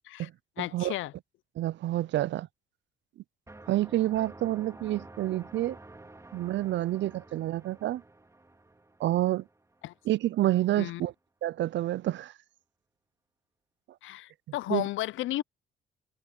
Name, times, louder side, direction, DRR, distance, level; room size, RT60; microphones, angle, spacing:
voice 1, 0.6-1.1 9.8-9.9 10.8-11.0 14.0-15.4, left 16 dB, 80° left, 0.5 m, -33 dB
voice 2, 1.6-2.5 3.7-5.8 6.3-8.0 9.0-9.4 10.1-11.1 11.4-12.3 14.7-14.9, right 14 dB, 70° right, 0.5 m, -28 dB
sound 1, 3.5-10.2, right 2 dB, 15° right, 3.2 m, -50 dB
cardioid pair, 90°, 20 cm